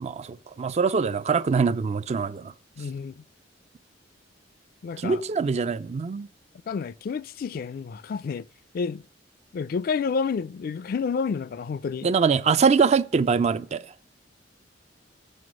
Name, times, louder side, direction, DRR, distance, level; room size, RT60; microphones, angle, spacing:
voice 1, 0.0-2.5 5.0-6.3 12.0-13.8, right 5 dB, 35° right, 0.3 m, -23 dB
voice 2, 2.8-3.2 4.8-5.2 6.7-8.4 8.7-9.0 9.5-12.1, left 5 dB, 55° left, 0.3 m, -29 dB
7.8 x 5.4 x 6.2 m
head